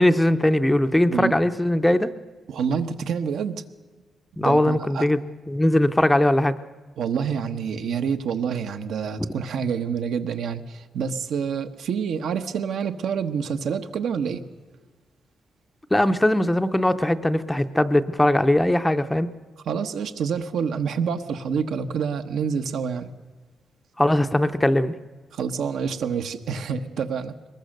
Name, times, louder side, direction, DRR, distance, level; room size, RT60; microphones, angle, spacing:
voice 1, 0.0-2.1 4.4-5.2 5.5-6.5 15.9-19.3 24.0-24.9, left 1 dB, 5° left, 10 dB, 0.6 m, -20 dB
voice 2, 2.5-3.6 4.4-5.0 7.0-14.4 19.7-23.1 25.3-27.3, right 6 dB, 75° right, 8 dB, 1.1 m, -27 dB
22.5 x 20.5 x 6.5 m, 1.3 s
wide cardioid pair, 175°, 0 cm